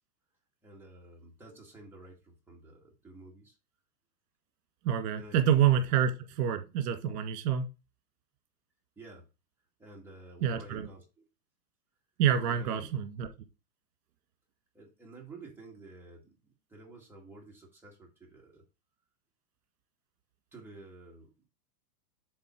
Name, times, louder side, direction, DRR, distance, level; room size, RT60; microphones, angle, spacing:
voice 1, 0.6-3.6 5.2-5.4 9.0-9.3 9.8-11.2 12.5-12.9 14.7-18.7 20.5-21.5, right 2 dB, 5° right, -3 dB, 1.9 m, -51 dB
voice 2, 4.8-7.7 10.4-10.9 12.2-13.3, right 9 dB, 60° right, 6 dB, 1.8 m, -27 dB
7.8 x 4.0 x 6.1 m, 0.28 s
supercardioid pair, 160°, 48 cm